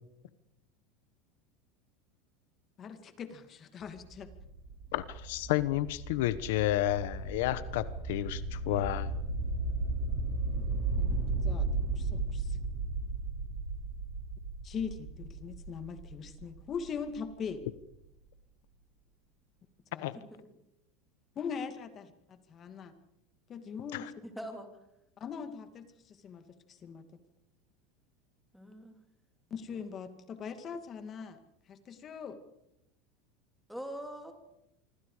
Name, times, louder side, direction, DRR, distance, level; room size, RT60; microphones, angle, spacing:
voice 1, 2.8-4.3 11.0-12.6 14.6-17.6 19.9-20.1 21.4-22.9 23.5-24.1 25.2-27.0 29.5-31.4 31.7-32.4, left 6 dB, 30° left, 9 dB, 2.3 m, -41 dB
sound 1, 3.8-17.5, right 3 dB, 40° right, 5.8 m, -35 dB
voice 2, 4.9-9.1 20.0-20.2 23.9-24.0, left 14 dB, 75° left, 15 dB, 1.1 m, -31 dB
voice 3, 20.1-20.5 24.2-24.7 28.5-29.0 33.7-34.3, equal, ahead, 4 dB, 3.3 m, -43 dB
26.0 x 25.0 x 5.0 m, 0.82 s
supercardioid pair, 145°, 0 cm